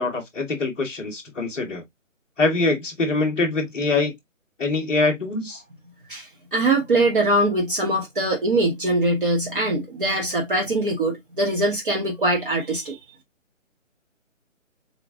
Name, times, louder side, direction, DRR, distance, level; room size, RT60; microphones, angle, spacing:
voice 1, 0.0-1.8 2.4-4.1 4.6-5.6, left 3 dB, 5° left, 0.8 m, -24 dB
voice 2, 6.1-13.0, right 2 dB, 40° right, 1.2 m, -22 dB
3.8 x 3.5 x 3.5 m
figure-of-eight pair, 145°, 39 cm